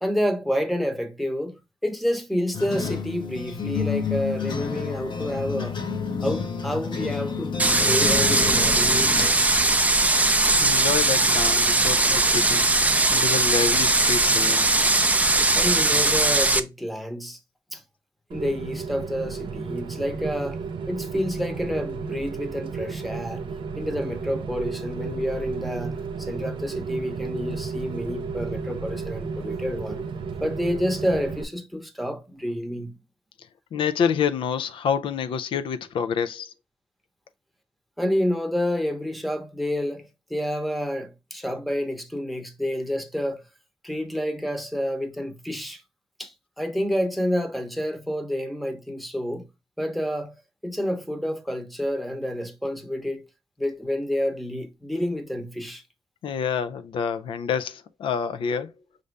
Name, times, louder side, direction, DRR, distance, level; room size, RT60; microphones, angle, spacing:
voice 1, 0.0-5.8 6.2-9.6 15.5-17.4 17.7-17.8 18.3-20.6 20.9-23.5 23.8-30.0 30.4-33.0 38.0-43.5 43.8-45.8 46.2-49.5 49.8-50.3 50.6-53.3 53.6-55.8, equal, ahead, 0.8 m, -29 dB
sound 1, 2.5-9.3, left 5 dB, 60° left, 0.8 m, -29 dB
sound 2, 7.6-16.6, right 2 dB, 15° right, 0.4 m, -20 dB
voice 2, 10.6-12.7 13.1-14.7 33.7-36.5 56.2-58.7, left 7 dB, 85° left, 0.4 m, -27 dB
Rain, 18.3-31.4, right 5 dB, 70° right, 0.5 m, -33 dB
5.3 x 2.5 x 3.2 m
cardioid pair, 90°, 9 cm